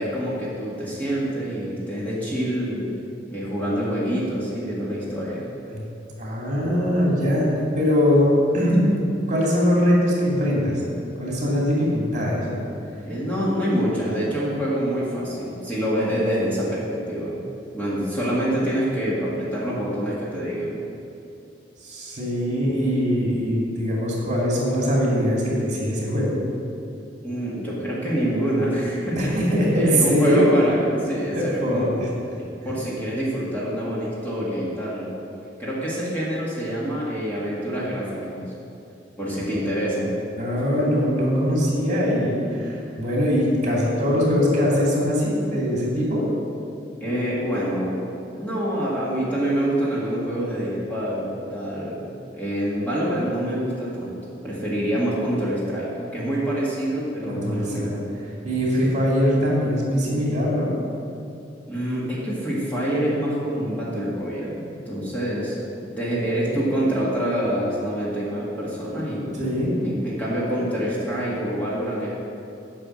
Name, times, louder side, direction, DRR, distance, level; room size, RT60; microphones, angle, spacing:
voice 1, 0.0-2.9 3.3-5.4 13.0-17.4 17.7-20.8 27.2-29.3 29.7-31.9 32.6-35.1 35.6-38.5 39.2-40.1 47.0-48.0 48.4-54.2 54.4-58.0 58.8-59.0 61.7-65.6 66.0-69.4 69.8-72.1, equal, 10° left, -8 dB, 1.9 m, -26 dB
voice 2, 6.2-7.5 7.7-8.3 8.5-8.8 9.3-10.7 11.2-12.6 21.8-26.3 29.2-30.5 31.3-32.1 40.4-46.2 57.3-57.9 58.4-60.7 69.3-69.7, equal, 40° right, -4 dB, 2.6 m, -22 dB
9.8 x 5.8 x 7.5 m, 2.7 s
head